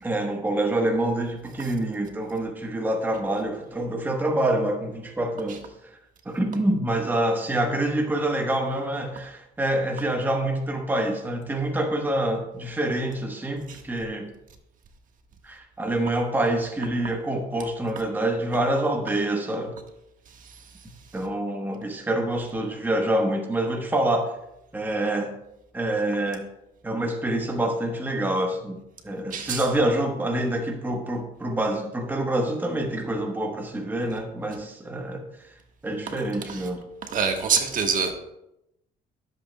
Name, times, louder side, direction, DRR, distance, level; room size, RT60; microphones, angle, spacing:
voice 1, 0.0-5.7 6.2-14.3 15.4-19.8 21.1-24.3 24.7-25.3 25.7-26.4 26.8-35.2 35.8-36.8, right 1 dB, 10° right, 2 dB, 1.1 m, -26 dB
voice 2, 29.3-29.6 36.5-36.6 37.1-38.1, right 6 dB, 50° right, 4 dB, 1.4 m, -25 dB
14.0 x 7.8 x 2.2 m, 0.85 s
cardioid pair, 110°, 17 cm